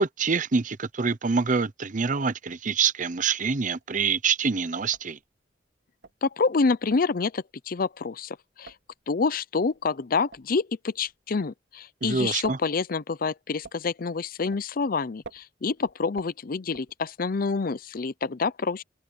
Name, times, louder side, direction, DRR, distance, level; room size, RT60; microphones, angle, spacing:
voice 1, 0.0-5.2 12.0-12.6, right 5 dB, 45° right, 0.7 m, -26 dB
sound 1, 3.8-4.1 4.4-4.5 4.8-11.8 12.1-17.4, right 3 dB, 80° right, 2.9 m, -49 dB
voice 2, 6.2-8.7 9.1-18.8, left 4 dB, 50° left, 0.6 m, -27 dB
open air
head